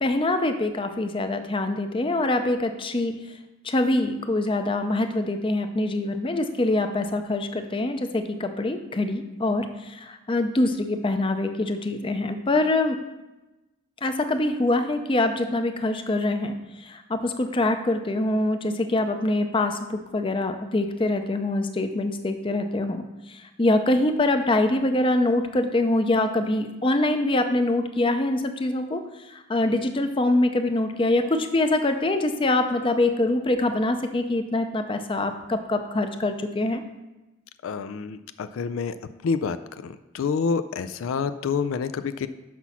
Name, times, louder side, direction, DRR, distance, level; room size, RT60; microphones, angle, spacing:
voice 1, 0.0-3.1 3.6-13.0 14.0-16.6 16.8-23.0 23.3-29.0 29.3-36.8, left 2 dB, 25° left, 7 dB, 0.5 m, -24 dB
voice 2, 37.6-38.9 39.2-39.6 39.8-42.3, left 5 dB, 80° left, 12 dB, 0.4 m, -27 dB
6.0 x 6.0 x 5.6 m, 1.1 s
head